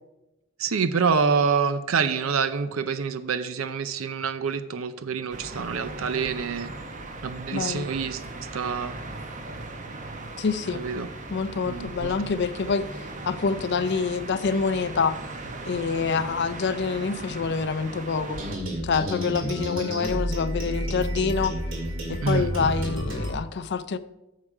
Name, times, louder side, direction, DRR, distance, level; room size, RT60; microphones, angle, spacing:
voice 1, 0.6-6.7 7.2-8.2 8.5-9.0 10.7-11.1 11.6-12.1 22.2-22.5, right 5 dB, 85° right, 12 dB, 0.6 m, -26 dB
sound 1, 5.3-18.6, right 2 dB, 40° right, 0.9 m, -38 dB
voice 2, 7.5-7.9 10.4-10.8 11.3-12.9 13.2-15.1 15.6-18.4 18.8-21.5 22.1-24.0, left 5 dB, 55° left, 14 dB, 0.5 m, -26 dB
sound 2, 18.3-23.3, right 1 dB, 70° right, 2.3 m, -30 dB
8.8 x 6.7 x 4.8 m, 0.99 s
head